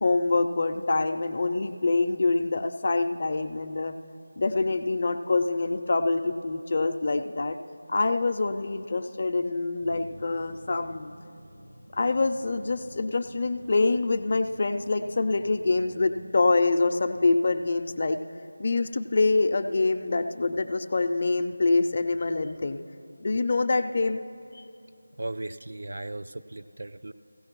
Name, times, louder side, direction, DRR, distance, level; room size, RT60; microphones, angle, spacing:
voice 1, 0.0-3.9 4.4-7.6 7.9-11.1 11.9-18.2 18.6-22.8 23.2-24.2 24.5-24.6, left 3 dB, 35° left, 8 dB, 0.4 m, -25 dB
sound 1, 9.8-16.6, equal, 75° right, 3.1 m, -49 dB
voice 2, 25.2-27.1, right 2 dB, 60° right, 10 dB, 0.3 m, -37 dB
16.5 x 15.5 x 3.0 m, 2.6 s
figure-of-eight pair, 175°, 0 cm